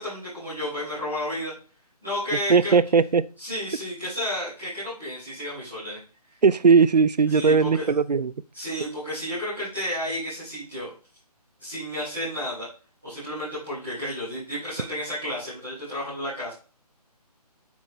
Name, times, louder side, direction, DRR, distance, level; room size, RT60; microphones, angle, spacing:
voice 1, 0.0-1.5 2.0-2.7 3.4-6.0 7.3-7.9 8.5-10.9 11.6-12.7 13.0-16.5, left 1 dB, ahead, -15 dB, 0.3 m, -32 dB
voice 2, 2.5-3.2 6.4-8.3, right 5 dB, 85° right, 17 dB, 0.5 m, -18 dB
7.4 x 5.4 x 2.8 m, 0.36 s
figure-of-eight pair, 150°, 21 cm